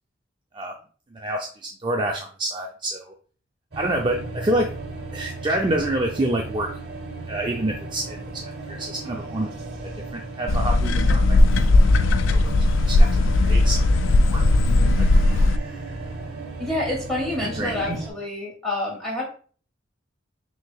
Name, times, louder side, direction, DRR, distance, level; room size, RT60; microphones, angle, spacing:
voice 1, 1.1-1.5 1.8-3.1 3.8-4.7 5.1-6.7 7.3-8.4 8.7-9.5 9.8-11.4 12.4-12.5 12.9-13.8 14.3-14.4 15.0-15.1 17.4-18.0, right 1 dB, 25° right, 1 dB, 0.3 m, -27 dB
sound 1, 3.7-18.1, right 2 dB, 55° right, 0.9 m, -35 dB
sound 2, 10.5-15.6, left 2 dB, 80° left, 0.3 m, -17 dB
voice 2, 16.6-19.2, left 2 dB, ahead, -5 dB, 1.6 m, -28 dB
6.3 x 2.7 x 2.2 m, 0.42 s
head